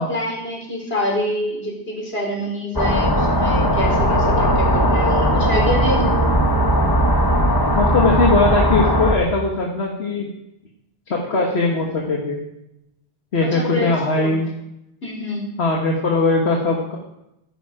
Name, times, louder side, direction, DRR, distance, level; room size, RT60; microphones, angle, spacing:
voice 1, 0.0-6.2 13.4-14.3 15.0-15.5, left 1 dB, 70° left, -1 dB, 4.3 m, -26 dB
sound 1, 2.8-9.2, equal, 20° left, 1.5 m, -18 dB
voice 2, 7.7-10.3 11.1-12.4 13.3-14.5 15.6-17.0, left 3 dB, 85° left, -1 dB, 1.9 m, -20 dB
14.5 x 10.0 x 5.0 m, 0.85 s
omnidirectional pair, 1.1 m